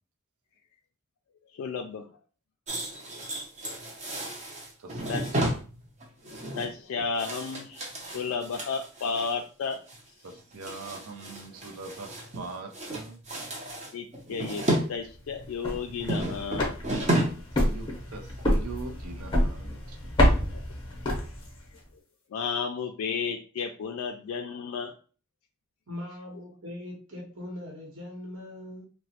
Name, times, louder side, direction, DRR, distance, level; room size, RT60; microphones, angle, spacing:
voice 1, 1.5-2.1 5.1-5.3 6.5-9.8 13.9-14.6 14.9-16.7 20.2-20.6 22.3-24.9, left 5 dB, 75° left, 4 dB, 0.3 m, -33 dB
sound 1, 2.7-9.3 9.7-10.0 10.2-12.5 12.7-14.9 15.2-17.5 17.8-18.0 18.4-18.5, right 1 dB, 30° right, 0.6 m, -32 dB
voice 2, 10.2-13.2 17.2-20.0, right 3 dB, 85° right, 4 dB, 0.5 m, -42 dB
sound 2, 15.4-21.7, left 1 dB, 20° left, 0.7 m, -28 dB
voice 3, 25.9-28.8, left 1 dB, 65° right, -1 dB, 1.0 m, -40 dB
3.0 x 2.1 x 2.8 m, 0.37 s
head